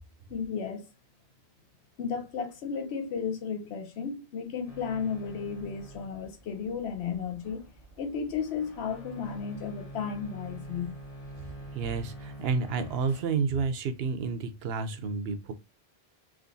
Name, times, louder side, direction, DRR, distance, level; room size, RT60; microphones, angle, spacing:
voice 1, 0.3-0.9 2.0-7.6 8.0-11.0, left 6 dB, 80° left, 0.9 m, -34 dB
sound 1, 4.7-13.2, right 1 dB, 35° left, 1.3 m, -46 dB
voice 2, 11.7-15.5, right 5 dB, 70° right, 0.8 m, -30 dB
3.6 x 3.1 x 2.6 m
omnidirectional pair, 1.1 m